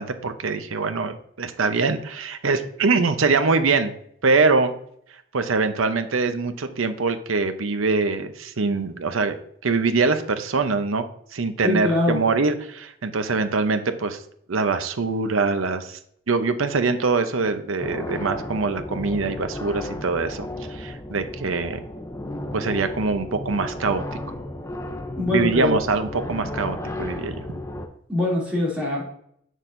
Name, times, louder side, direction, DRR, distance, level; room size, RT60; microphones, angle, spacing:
voice 1, 0.0-3.9 4.2-4.7 5.3-9.4 9.6-11.0 11.3-14.2 14.5-16.0 16.3-21.8 22.5-24.0 25.3-27.4, right 4 dB, 80° right, 9 dB, 0.7 m, -23 dB
voice 2, 11.6-12.2 25.2-25.8 28.1-29.0, left 2 dB, 5° right, -6 dB, 2.7 m, -23 dB
sound 1, 17.8-27.9, left 1 dB, 15° left, 0.6 m, -33 dB
7.5 x 6.4 x 2.6 m, 0.70 s
head